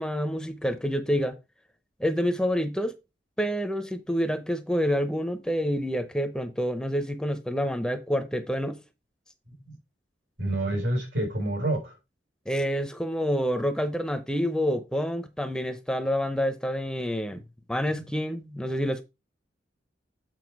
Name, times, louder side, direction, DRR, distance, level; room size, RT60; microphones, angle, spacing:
voice 1, 0.0-1.4 2.0-2.9 3.4-8.8 12.5-17.4 17.7-19.0, equal, 5° left, 0.7 m, -28 dB
voice 2, 10.4-12.0 17.3-17.4 18.0-18.1, right 1 dB, 85° right, 3.9 m, -28 dB
8.0 x 4.5 x 4.6 m
head